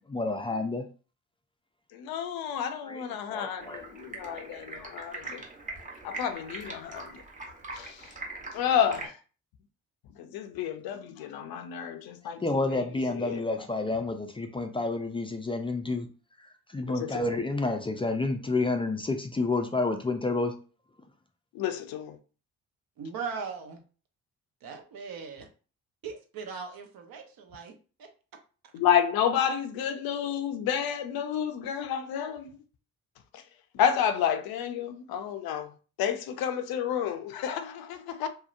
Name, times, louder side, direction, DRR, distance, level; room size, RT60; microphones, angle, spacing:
voice 1, 0.1-0.8 2.9-3.8 12.4-16.1 16.4-20.5, left 3 dB, 15° left, 0.3 m, -30 dB
voice 2, 1.9-5.4 6.0-7.2 7.7-8.1 8.5-9.2 10.2-13.4 16.9-17.4 21.5-22.2 28.7-32.5 33.3-33.4 33.7-35.7 36.0-38.3, left 8 dB, 65° left, 0.5 m, -30 dB
Stream, 3.6-9.1, right 2 dB, 20° right, 0.9 m, -42 dB
voice 3, 23.0-23.8 24.6-25.5 26.0-28.1, right 5 dB, 60° right, 0.7 m, -39 dB
2.7 x 2.0 x 2.4 m
hypercardioid pair, 50°, 39 cm